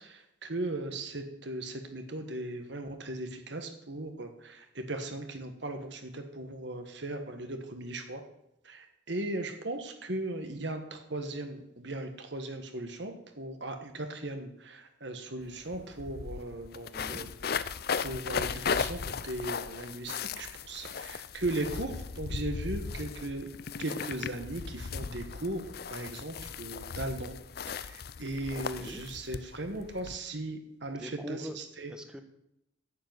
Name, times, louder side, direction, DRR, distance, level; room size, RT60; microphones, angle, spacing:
voice 1, 0.0-8.2 8.6-17.7 18.0-23.5 23.8-27.4 27.7-31.9, right 2 dB, 60° right, 6 dB, 1.5 m, -38 dB
sound 1, 15.4-15.5 15.7-30.2, left 6 dB, 50° left, 0.5 m, -37 dB
voice 2, 16.9-17.3 28.5-29.0 31.0-31.6 31.9-32.2, equal, 5° right, 7 dB, 1.1 m, -42 dB
10.5 x 7.6 x 9.3 m, 0.82 s
head